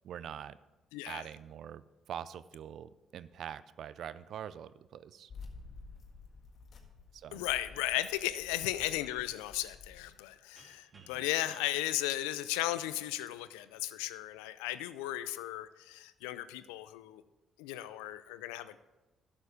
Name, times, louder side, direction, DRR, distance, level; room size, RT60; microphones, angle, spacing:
voice 1, 0.0-0.6 1.1-5.3 7.1-7.4 10.9-11.2, right 9 dB, 65° right, 16 dB, 0.4 m, -44 dB
voice 2, 0.9-1.2 7.3-17.2 17.6-18.8, left 15 dB, 90° left, 14 dB, 0.4 m, -36 dB
sound 1, 5.3-10.1, left 4 dB, 55° left, 1.6 m, -52 dB
sound 2, 10.6-13.3, right 2 dB, 40° right, 3.0 m, -61 dB
11.5 x 7.1 x 5.0 m, 1.1 s
supercardioid pair, 55°, 0 cm